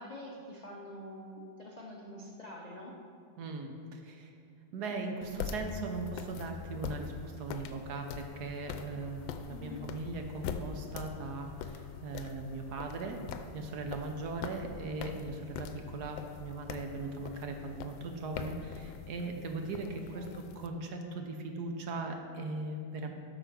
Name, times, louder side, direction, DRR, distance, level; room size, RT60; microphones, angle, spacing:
voice 1, 0.0-3.0 9.5-9.9 20.1-20.3, left 1 dB, 55° left, -3 dB, 0.4 m, -46 dB
voice 2, 3.4-4.3 4.7-13.2 13.5-23.1, right 3 dB, 65° right, 4 dB, 1.2 m, -39 dB
sound 1, 5.2-20.7, left 7 dB, 85° left, 1.3 m, -43 dB
sound 2, 7.0-13.6, left 10 dB, 40° right, 1.5 m, -58 dB
8.0 x 6.3 x 6.0 m, 2.5 s
omnidirectional pair, 2.1 m